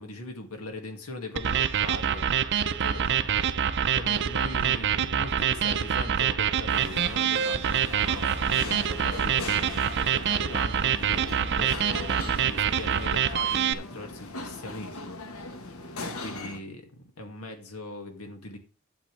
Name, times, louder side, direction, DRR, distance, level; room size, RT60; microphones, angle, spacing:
voice 1, 0.0-2.3 2.6-15.4 16.0-18.6, left 2 dB, 85° left, 4 dB, 2.2 m, -41 dB
sound 1, 1.4-13.7, right 8 dB, 55° right, 0.6 m, -26 dB
sound 2, 6.7-16.6, left 2 dB, 70° left, 1.4 m, -39 dB
11.5 x 8.2 x 3.3 m, 0.36 s
head